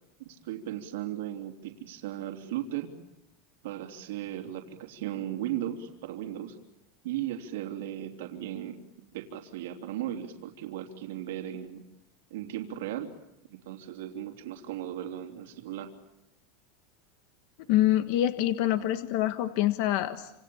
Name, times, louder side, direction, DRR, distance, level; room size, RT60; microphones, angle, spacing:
voice 1, 0.2-2.9 3.6-6.6 7.0-8.8 9.1-11.8 12.3-13.1 13.5-15.9, right 12 dB, 75° right, 4 dB, 3.3 m, -36 dB
voice 2, 17.7-20.3, left 13 dB, 50° left, 10 dB, 1.4 m, -26 dB
28.5 x 27.5 x 7.3 m, 0.88 s
supercardioid pair, 175°, 0 cm